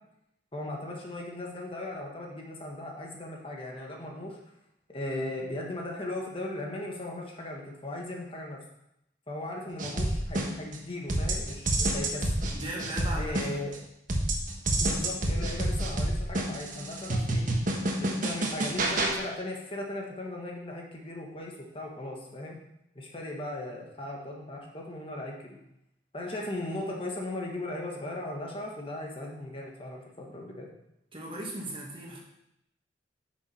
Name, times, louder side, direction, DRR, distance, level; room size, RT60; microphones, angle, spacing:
voice 1, 0.5-4.4 4.9-8.6 9.3-12.2 13.1-13.7 14.8-17.4 18.0-22.6 22.9-25.6 26.1-30.7, left 1 dB, 30° left, -1 dB, 1.5 m, -37 dB
sound 1, 9.8-10.8 11.1-13.8 14.1-19.2, right 1 dB, 45° right, 1.3 m, -28 dB
voice 2, 12.5-13.6 31.1-32.2, right 1 dB, 30° right, -2 dB, 1.9 m, -37 dB
10.5 x 6.4 x 4.4 m, 0.82 s
head